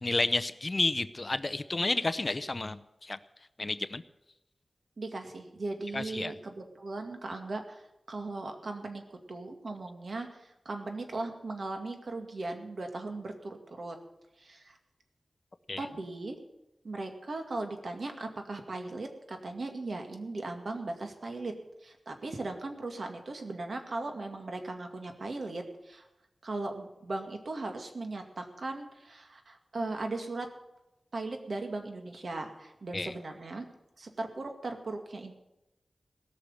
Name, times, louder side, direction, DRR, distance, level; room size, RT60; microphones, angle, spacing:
voice 1, 0.0-3.2 3.6-4.0 5.9-6.3 15.7-15.9 32.9-33.1, left 2 dB, 40° left, 13 dB, 0.6 m, -31 dB
voice 2, 5.0-14.0 14.4-14.8 15.8-16.4 16.8-21.5 21.8-26.0 26.4-30.5 31.1-33.7 34.0-35.3, right 2 dB, 70° right, 4 dB, 2.1 m, -38 dB
17.5 x 6.6 x 9.7 m, 0.91 s
wide cardioid pair, 100°, 0 cm